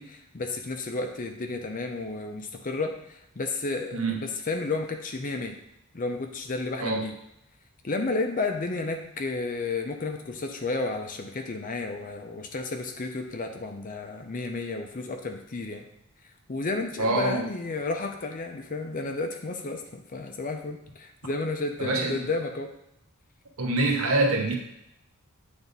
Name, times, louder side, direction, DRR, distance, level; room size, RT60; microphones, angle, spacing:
voice 1, 0.0-5.6 5.9-7.1 7.8-15.8 16.5-22.7, left 3 dB, 35° left, 4 dB, 0.6 m, -32 dB
voice 2, 3.9-4.2 6.8-7.1 17.0-17.5 21.8-22.3 23.6-24.5, right 2 dB, 70° right, 1 dB, 1.1 m, -25 dB
8.9 x 3.5 x 4.0 m, 0.83 s
head